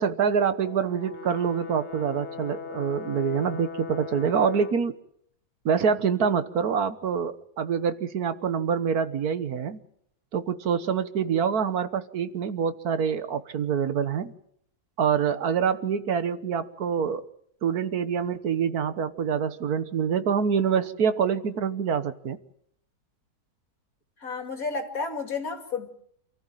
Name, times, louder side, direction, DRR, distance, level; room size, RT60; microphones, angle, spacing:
voice 1, 0.0-4.9 5.6-9.8 10.3-14.3 15.0-17.3 17.6-22.4, right 7 dB, 75° right, 1.7 m, -26 dB
Brass instrument, 0.6-4.8, left 6 dB, 45° left, 1.7 m, -39 dB
voice 2, 24.2-25.9, left 4 dB, 65° left, 3.1 m, -31 dB
28.0 x 14.5 x 9.0 m
omnidirectional pair, 1.6 m